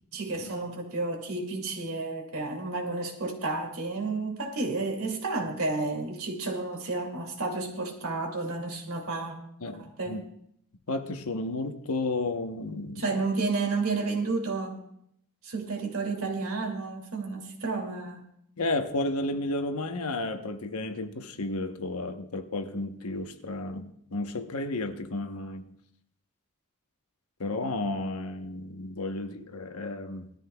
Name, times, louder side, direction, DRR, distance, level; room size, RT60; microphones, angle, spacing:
voice 1, 0.1-9.4 9.8-10.2 13.0-14.8 15.4-18.3, right 3 dB, 70° right, 2.4 m, -31 dB
voice 2, 9.6-10.2 10.9-13.1 18.6-25.7 27.4-30.3, left 2 dB, 80° left, 1.0 m, -32 dB
19.5 x 13.0 x 2.3 m
head